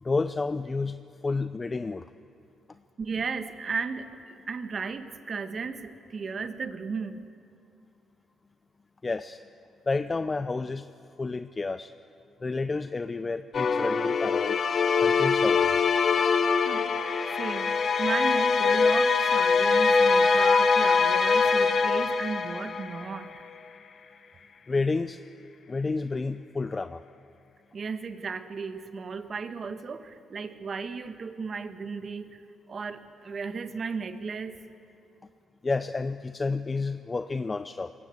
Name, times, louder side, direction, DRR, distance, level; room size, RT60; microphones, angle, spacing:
voice 1, 0.0-2.1 9.0-9.4 9.9-10.9 11.2-11.9 12.4-14.6 15.0-15.8 24.7-25.2 25.7-27.0 35.6-37.9, left 3 dB, 25° left, 12 dB, 0.5 m, -30 dB
voice 2, 3.0-7.2 16.6-17.7 18.0-23.3 27.7-34.6, right 5 dB, 45° right, 10 dB, 1.2 m, -35 dB
sound 1, 13.5-23.3, left 4 dB, 50° left, 1.1 m, -23 dB
21.0 x 17.5 x 7.9 m, 2.6 s
cardioid pair, 90°, 0 cm